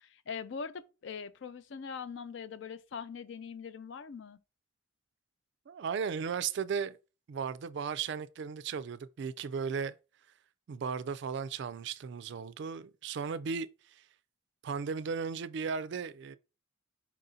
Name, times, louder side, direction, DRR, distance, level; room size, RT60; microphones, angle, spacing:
voice 1, 0.0-4.4, left 6 dB, 60° left, 0.4 m, -42 dB
voice 2, 5.7-7.0 7.3-10.0 10.7-13.7 14.0-14.1 14.6-16.4, right 6 dB, 55° right, 0.3 m, -36 dB
4.7 x 2.6 x 3.7 m
head